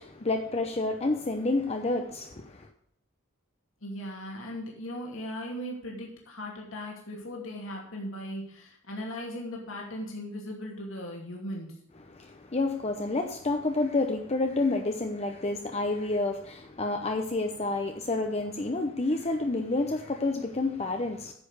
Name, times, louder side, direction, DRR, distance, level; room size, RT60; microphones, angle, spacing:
voice 1, 0.0-2.7 12.1-21.3, left 2 dB, 30° left, 0.8 m, -29 dB
voice 2, 3.8-11.7, equal, 70° left, 2.6 m, -38 dB
9.6 x 6.8 x 6.6 m
head